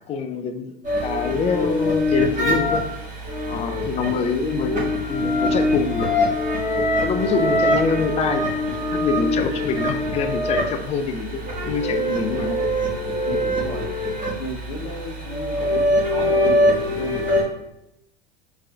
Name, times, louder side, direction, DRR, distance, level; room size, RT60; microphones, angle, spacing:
voice 1, 0.1-0.7 1.0-2.8 3.5-6.1 7.0-12.6, left 5 dB, 20° left, 8 dB, 0.3 m, -25 dB
sound 1, 0.8-17.4, left 1 dB, 25° right, 1.6 m, -23 dB
voice 2, 3.5-4.5 7.3-7.6 13.2-14.0 14.4-17.4, left 2 dB, 55° left, 4 dB, 0.9 m, -34 dB
4.5 x 4.5 x 2.4 m, 0.86 s
figure-of-eight pair, 85°, 32 cm